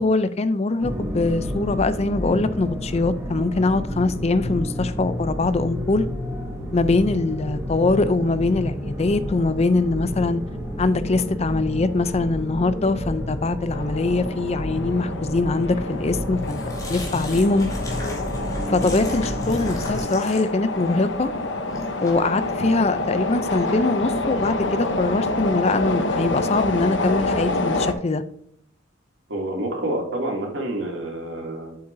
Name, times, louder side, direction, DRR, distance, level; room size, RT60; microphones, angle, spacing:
voice 1, 0.0-6.1 6.7-10.4 10.8-16.6 16.9-17.7 18.7-21.3 22.0-28.2, left 3 dB, 35° left, 0.5 m, -22 dB
sound 1, 0.8-20.0, equal, 15° right, 1.6 m, -30 dB
sound 2, 13.7-27.9, left 2 dB, 70° left, 0.9 m, -27 dB
sound 3, 15.9-24.2, left 2 dB, 20° left, 2.7 m, -41 dB
voice 2, 29.3-31.8, right 1 dB, 90° right, 2.6 m, -28 dB
8.6 x 7.7 x 2.7 m
head